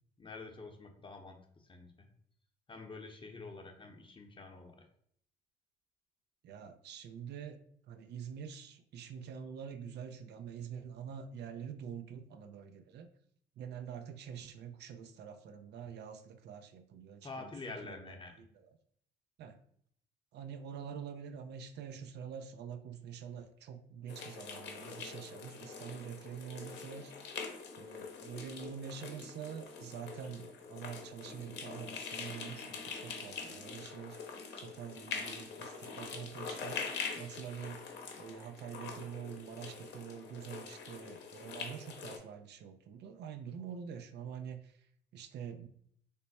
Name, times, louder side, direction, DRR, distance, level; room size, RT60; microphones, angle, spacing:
voice 1, 0.2-2.1 2.7-4.9 17.2-18.3, left 3 dB, 25° left, 3 dB, 0.7 m, -47 dB
voice 2, 6.4-7.6 7.9-13.1 13.6-17.5 17.8-18.7 19.4-19.6 20.3-27.1 27.8-34.2 34.6-37.8 38.2-44.7 45.1-45.7, right 7 dB, 65° right, 8 dB, 0.4 m, -46 dB
sound 1, 24.1-42.2, left 5 dB, 70° left, 0.7 m, -44 dB
3.4 x 2.1 x 4.0 m, 0.66 s
supercardioid pair, 75°, 18 cm